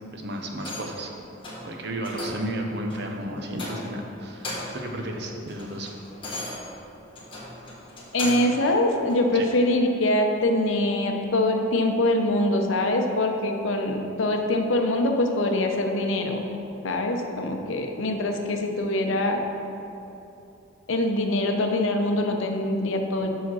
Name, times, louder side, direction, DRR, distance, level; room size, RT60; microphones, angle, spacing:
voice 1, 0.1-1.1 1.6-5.9 9.3-9.5, right 1 dB, 55° right, 2 dB, 0.7 m, -33 dB
sound 1, 0.6-1.0 1.4-1.7 2.0-2.5 2.9-3.1 3.5-4.0 4.3-4.9 5.2-8.6 9.1-9.2, left 2 dB, 25° left, 1.3 m, -36 dB
voice 2, 8.1-16.4 16.8-19.4 20.9-23.3, left 1 dB, 75° left, 4 dB, 0.7 m, -24 dB
5.9 x 4.9 x 6.1 m, 2.8 s
head